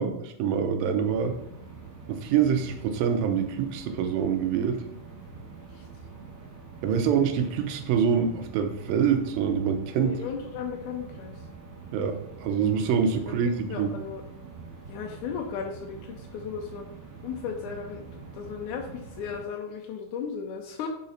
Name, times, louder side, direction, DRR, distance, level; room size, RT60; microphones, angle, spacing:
voice 1, 0.0-1.4 2.1-4.8 6.8-10.2 11.9-13.9, right 7 dB, 80° right, 7 dB, 2.4 m, -25 dB
sound 1, 1.0-19.4, right 4 dB, 35° right, 1.4 m, -45 dB
voice 2, 10.0-11.4 13.3-13.4 13.7-14.2 14.9-16.9 17.2-18.9 19.2-20.9, left 7 dB, 85° left, 1 dB, 1.8 m, -35 dB
5.3 x 4.9 x 5.6 m, 0.76 s
omnidirectional pair, 4.2 m